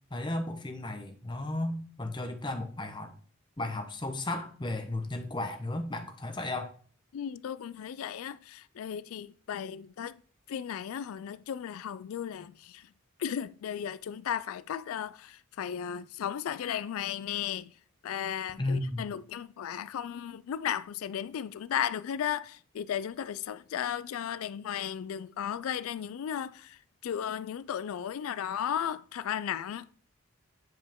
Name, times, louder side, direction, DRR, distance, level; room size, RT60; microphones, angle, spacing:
voice 1, 0.1-3.1 3.6-6.7 18.6-19.0, left 2 dB, 20° left, 0.9 m, -34 dB
voice 2, 7.1-10.2 10.5-12.9 13.2-17.7 18.0-29.9, left 9 dB, 90° left, 0.3 m, -35 dB
9.2 x 5.2 x 3.6 m
head